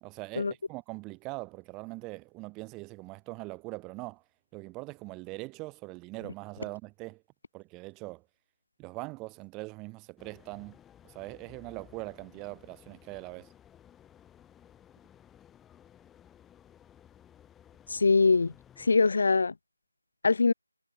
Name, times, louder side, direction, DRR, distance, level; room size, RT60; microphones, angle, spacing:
voice 1, 0.0-4.2 4.5-7.2 7.5-8.2 8.8-10.8 11.0-13.5, right 24 dB, 10° right, 0.5 m, -42 dB
sound 1, 10.2-19.0, left 10 dB, 5° left, 2.5 m, -57 dB
voice 2, 17.9-19.5 20.2-20.5, left 4 dB, 45° left, 0.8 m, -23 dB
figure-of-eight pair, 160°, 0 cm